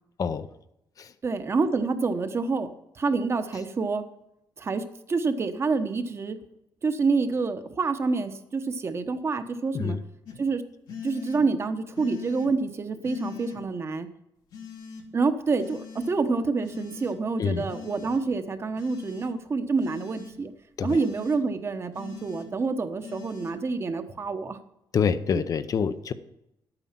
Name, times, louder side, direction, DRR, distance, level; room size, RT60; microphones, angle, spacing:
voice 1, 1.2-2.7 2.9-4.0 4.6-6.4 6.8-10.0 10.4-10.6 11.0-14.1 15.1-20.5 20.8-24.6, right 4 dB, 35° right, 9 dB, 1.1 m, -27 dB
sound 1, 10.3-10.4 10.9-11.4 11.9-12.5 13.0-13.6 14.5-15.0 15.6-16.1 16.6-17.2 17.7-18.2 18.8-19.3 19.8-20.3 20.9-21.4 21.9-22.5 23.0-23.5, left 7 dB, 85° left, 2.5 m, -41 dB
voice 2, 24.9-26.1, left 6 dB, 50° left, 12 dB, 0.7 m, -26 dB
11.5 x 9.0 x 5.9 m, 0.84 s
cardioid pair, 130°, 8 cm